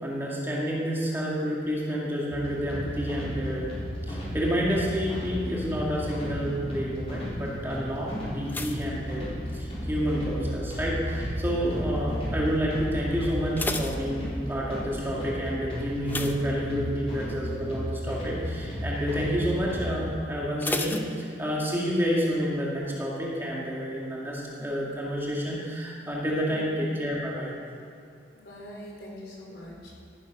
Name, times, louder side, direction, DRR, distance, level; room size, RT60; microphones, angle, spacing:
voice 1, 0.0-3.7 4.1-27.5, equal, 15° right, -4 dB, 2.1 m, -29 dB
sound 1, 2.3-20.0, equal, 35° left, 3.9 m, -34 dB
sound 2, 8.5-10.0 10.2-10.7 11.3-11.7 12.0-12.1 12.5-12.6 13.2-14.8 16.0-17.2 17.5-17.8 18.2-18.3 20.6-21.8 22.1-22.2, left 2 dB, 10° left, 0.6 m, -35 dB
voice 2, 28.3-29.9, left 1 dB, 65° left, -3 dB, 4.0 m, -43 dB
14.5 x 10.5 x 6.0 m, 2.5 s
head